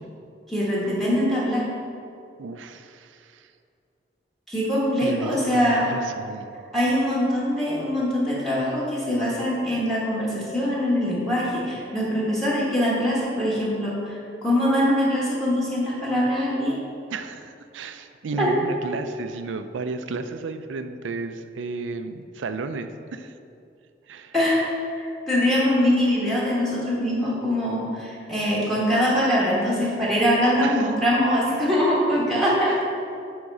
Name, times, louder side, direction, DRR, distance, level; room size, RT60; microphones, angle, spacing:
voice 1, 0.5-1.7 4.5-5.9 6.7-16.8 18.3-18.5 24.3-24.7 24.9-32.8, equal, ahead, -7 dB, 1.3 m, -23 dB
voice 2, 2.4-3.5 5.0-6.5 17.1-23.3 24.1-24.3 30.6-30.9 32.7-32.8, right 3 dB, 90° right, 9 dB, 0.4 m, -33 dB
7.7 x 3.6 x 5.3 m, 2.5 s
head